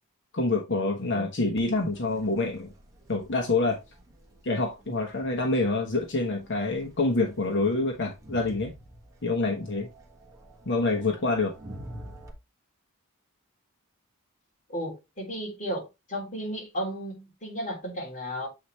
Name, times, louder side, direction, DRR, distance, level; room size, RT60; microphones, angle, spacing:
voice 1, 0.3-2.7 3.1-3.8 4.4-8.7 9.2-9.9 10.6-11.5, left 3 dB, 60° left, 1.1 m, -26 dB
Crowd, 1.6-12.3, right 1 dB, 15° right, 1.3 m, -48 dB
voice 2, 14.7-18.5, equal, 35° left, 3.3 m, -34 dB
7.8 x 4.3 x 3.2 m
head